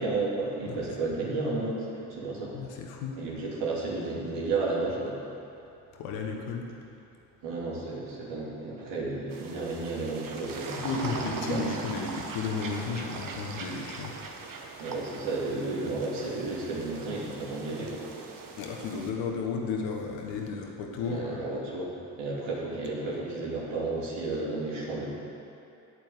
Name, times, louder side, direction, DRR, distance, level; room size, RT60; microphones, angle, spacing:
voice 1, 0.0-2.5 3.1-5.2 7.4-11.7 14.8-18.1 21.0-21.9 22.2-25.1, right 3 dB, 75° right, -5 dB, 2.9 m, -32 dB
voice 2, 2.5-3.1 5.9-6.7 10.8-14.2 18.6-21.5, left 5 dB, 80° left, 1 dB, 1.5 m, -33 dB
sound 1, 9.3-19.1, right 4 dB, 45° right, 1.4 m, -41 dB
8.6 x 7.6 x 8.3 m, 2.7 s
hypercardioid pair, 55°, 44 cm